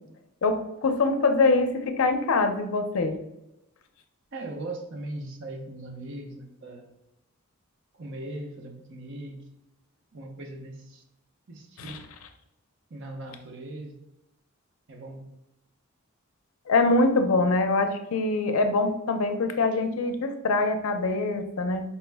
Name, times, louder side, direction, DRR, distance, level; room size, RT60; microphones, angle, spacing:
voice 1, 0.4-3.2 11.8-12.0 16.7-21.8, left 3 dB, 75° left, 7 dB, 0.5 m, -24 dB
voice 2, 4.3-6.9 7.9-9.5 10.1-11.0 11.5-12.0 12.9-14.0 14.9-15.3 19.7-19.8, right 2 dB, 55° right, 4 dB, 0.6 m, -39 dB
4.3 x 2.1 x 3.3 m, 0.88 s
head